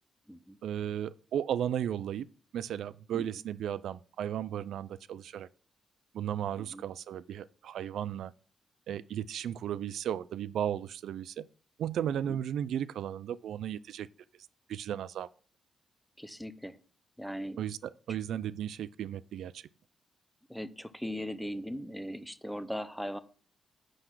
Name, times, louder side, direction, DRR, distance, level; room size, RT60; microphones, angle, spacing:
voice 1, 0.6-2.3 2.5-5.5 6.1-8.3 8.9-11.5 11.8-14.1 14.7-15.3 17.6-19.6, right 10 dB, 85° right, 0.3 m, -35 dB
voice 2, 16.2-16.8 17.2-17.6 20.5-23.2, equal, ahead, 0.6 m, -39 dB
9.9 x 3.9 x 5.9 m
wide cardioid pair, 135°, 0 cm